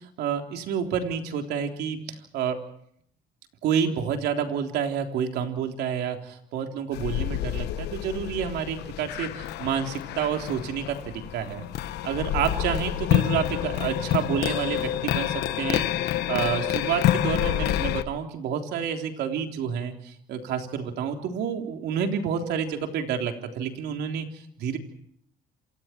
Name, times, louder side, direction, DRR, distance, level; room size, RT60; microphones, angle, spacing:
voice 1, 0.0-2.6 3.6-11.6 12.0-15.9 16.3-24.8, right 7 dB, 80° right, 4 dB, 3.6 m, -29 dB
sound 1, 6.9-18.0, left 13 dB, 80° left, 1.3 m, -28 dB
28.0 x 27.0 x 4.6 m, 0.69 s
cardioid pair, 110°, 17 cm